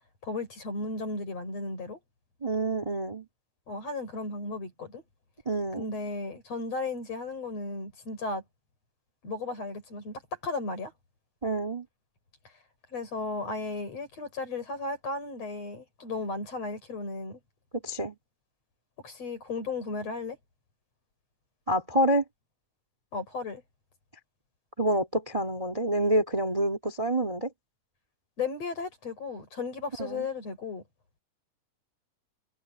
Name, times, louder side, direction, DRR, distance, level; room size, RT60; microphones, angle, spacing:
voice 1, 0.2-2.0 3.7-5.0 5.8-8.4 9.2-10.9 12.9-17.4 19.0-20.4 23.1-23.6 28.4-30.8, left 3 dB, 45° left, 6.8 m, -35 dB
voice 2, 2.4-3.3 5.5-5.9 11.4-11.9 17.7-18.2 21.7-22.2 24.8-27.5 30.0-30.3, right 1 dB, 10° right, 2.1 m, -27 dB
omnidirectional pair, 3.9 m